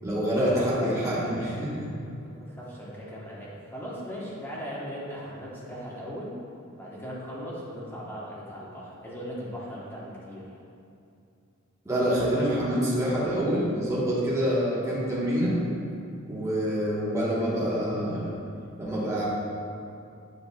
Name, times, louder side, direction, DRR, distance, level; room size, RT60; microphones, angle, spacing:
voice 1, 0.0-1.9 11.8-15.6 16.2-18.4 18.8-19.3, equal, 15° right, -8 dB, 1.3 m, -26 dB
voice 2, 2.2-6.3 6.8-10.5, equal, 10° left, -7 dB, 1.1 m, -38 dB
8.2 x 6.3 x 2.3 m, 2.6 s
head